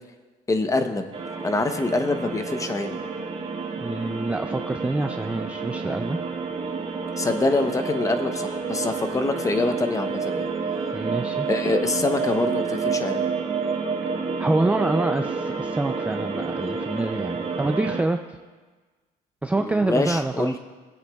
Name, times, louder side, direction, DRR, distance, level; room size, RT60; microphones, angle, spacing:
voice 1, 0.5-1.1 1.4-3.0 7.2-10.5 11.5-13.3 19.6-20.6, left 2 dB, 20° left, 8 dB, 0.8 m, -25 dB
sound 1, 1.1-18.0, right 5 dB, 35° right, 1.5 m, -29 dB
voice 2, 3.8-6.2 10.9-11.5 14.4-18.2 19.4-20.6, right 2 dB, 10° right, 5 dB, 0.4 m, -26 dB
19.5 x 7.9 x 2.3 m, 1.3 s
cardioid pair, 110°, 17 cm